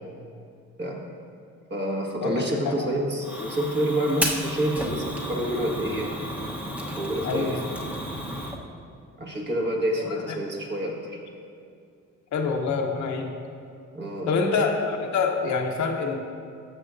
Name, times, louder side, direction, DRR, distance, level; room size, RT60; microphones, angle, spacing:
voice 1, 1.7-6.1 6.9-7.6 9.2-11.2 13.9-14.6, right 1 dB, 35° right, -1 dB, 1.6 m, -28 dB
voice 2, 2.2-2.9 4.1-4.2 7.2-7.6 10.0-10.4 12.3-13.3 14.2-16.2, left 4 dB, 70° left, 3 dB, 0.9 m, -26 dB
Fire, 3.2-8.6, equal, 5° right, 1.0 m, -32 dB
13.0 x 7.1 x 2.6 m, 2.4 s
cardioid pair, 90°, 30 cm